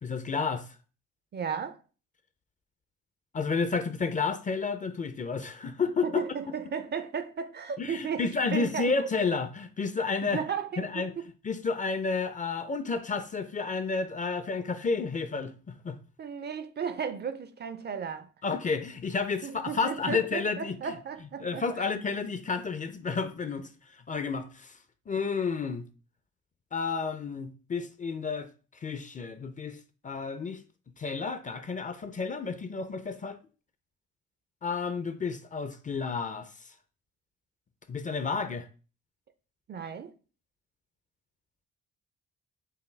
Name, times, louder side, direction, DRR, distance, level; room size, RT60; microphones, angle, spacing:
voice 1, 0.0-0.7 3.3-6.1 7.8-10.4 10.8-11.1 11.4-16.0 18.4-20.9 21.4-23.7 24.1-24.7 25.1-25.9 26.7-28.5 28.8-30.6 31.0-33.4 34.6-36.5 37.9-38.7, left 4 dB, 25° left, 0.4 m, -31 dB
voice 2, 1.3-1.8 6.0-9.1 10.2-11.0 16.2-18.3 19.4-21.9 39.7-40.1, right 7 dB, 35° right, 0.4 m, -35 dB
5.5 x 2.2 x 3.2 m
cardioid pair, 90°, 30 cm